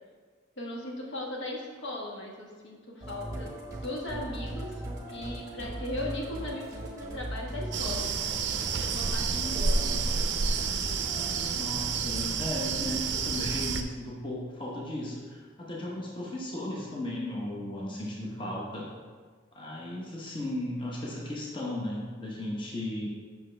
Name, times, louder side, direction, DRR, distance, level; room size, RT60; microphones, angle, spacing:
voice 1, 0.6-3.5 3.8-4.8 5.1-8.1 8.6-9.8, left 1 dB, 65° left, -2 dB, 1.2 m, -38 dB
Musical instrument, 3.0-11.5, right 1 dB, 15° right, 0.9 m, -39 dB
sound 1, 7.7-13.8, right 5 dB, 60° right, 0.5 m, -29 dB
voice 2, 9.3-10.0 11.5-18.9 19.5-23.1, left 1 dB, 25° left, -4 dB, 0.9 m, -36 dB
7.6 x 5.9 x 3.3 m, 1.5 s
head